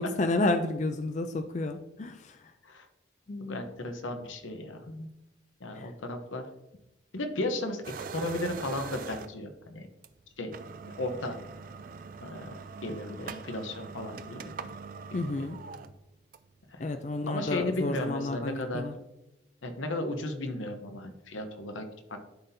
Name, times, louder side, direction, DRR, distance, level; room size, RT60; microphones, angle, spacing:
voice 1, 0.0-2.5 3.3-3.6 4.9-5.1 5.7-5.9 15.1-15.6 16.8-18.9, left 2 dB, 35° left, 8 dB, 0.4 m, -31 dB
voice 2, 3.5-4.9 5.6-6.5 7.1-9.9 10.4-10.6 11.0-11.4 12.2-14.5 16.7-16.8 17.3-18.8 19.6-21.8 22.1-22.2, left 1 dB, 90° left, 6 dB, 0.9 m, -35 dB
sound 1, 7.8-9.5 10.0-10.1 10.4-16.6, right 5 dB, 45° right, 0.3 m, -43 dB
12.0 x 4.1 x 2.7 m, 0.93 s
head